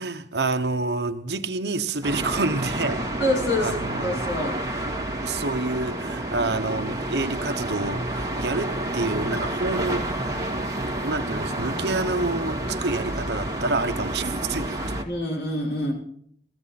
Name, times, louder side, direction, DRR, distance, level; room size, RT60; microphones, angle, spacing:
voice 1, 0.0-3.2 3.6-4.2 5.2-10.5 11.0-14.9, right 3 dB, 65° right, 1.2 m, -28 dB
sound 1, 2.0-15.0, right 1 dB, 20° right, 2.2 m, -29 dB
voice 2, 3.2-4.6 14.3-14.6 15.1-15.9, left 1 dB, 85° left, 5.6 m, -27 dB
16.5 x 15.5 x 4.3 m
head